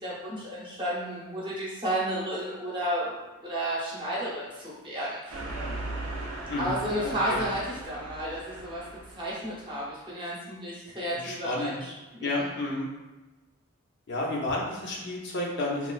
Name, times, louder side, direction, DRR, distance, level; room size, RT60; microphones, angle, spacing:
voice 1, 0.0-3.1 3.4-5.5 6.6-8.8 9.1-12.4, right 1 dB, 25° right, -7 dB, 0.7 m, -32 dB
sound 1, 5.3-9.5, right 2 dB, 70° right, 0.5 m, -38 dB
voice 2, 6.5-7.4 11.1-11.7 12.2-12.9 14.1-15.9, left 2 dB, 55° left, -3 dB, 0.5 m, -31 dB
3.0 x 2.3 x 2.3 m, 1.1 s
head